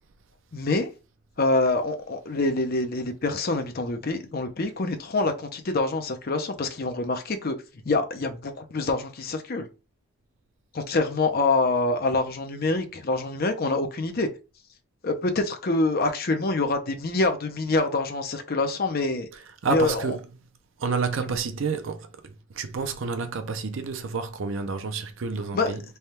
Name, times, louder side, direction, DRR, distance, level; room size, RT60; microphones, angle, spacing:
voice 1, 0.5-0.9 1.4-7.6 7.8-9.7 10.7-14.3 15.0-19.3 19.7-20.2 21.2-21.4 25.5-25.7, left 2 dB, 45° left, 0.5 m, -26 dB
voice 2, 19.6-20.2 20.8-22.1 22.5-25.8, right 4 dB, 60° right, 0.5 m, -29 dB
3.4 x 2.3 x 4.2 m
head